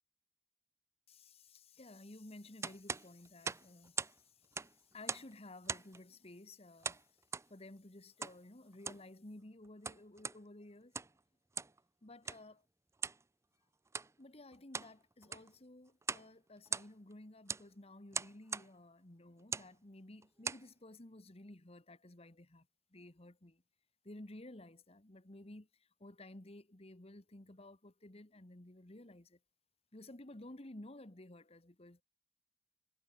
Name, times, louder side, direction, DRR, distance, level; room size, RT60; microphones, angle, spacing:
voice 1, 1.1-7.0 7.5-10.9 12.0-12.6 14.2-23.6 24.0-29.4 29.9-32.0, left 1 dB, 35° left, 1.6 m, -54 dB
sound 1, 2.6-4.2 4.4-5.3 5.7-6.0 6.8-7.5 8.2-8.4 8.7-9.1 9.6-10.4 10.8-11.2 11.5-11.8 12.3-12.4 13.0-13.2 13.9-14.1 14.5-14.9 15.2-15.5 16.0-16.3 16.6-17.1 17.5-17.7 18.1-18.7 19.4-19.7 20.2-20.7, right 5 dB, 15° right, 0.5 m, -41 dB
head